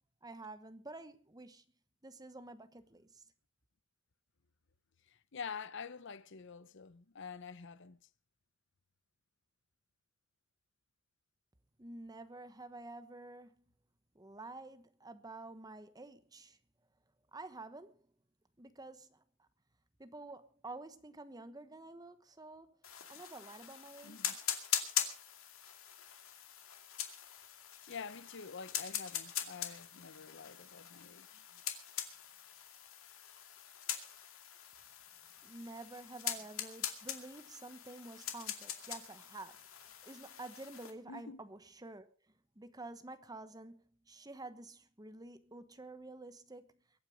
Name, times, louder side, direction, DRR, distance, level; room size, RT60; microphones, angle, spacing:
voice 1, 0.2-1.6 2.0-3.2 11.8-13.6 14.1-16.6 17.3-18.0 18.6-19.5 20.0-22.7 23.1-24.4 35.4-42.1 42.5-46.8, right 2 dB, 20° right, 1.1 m, -50 dB
voice 2, 5.1-8.0 24.0-24.4 27.9-31.4 41.1-41.4, left 5 dB, 60° left, 0.8 m, -47 dB
sound 1, 22.8-40.9, left 10 dB, 85° left, 2.4 m, -42 dB
22.5 x 9.1 x 5.1 m
head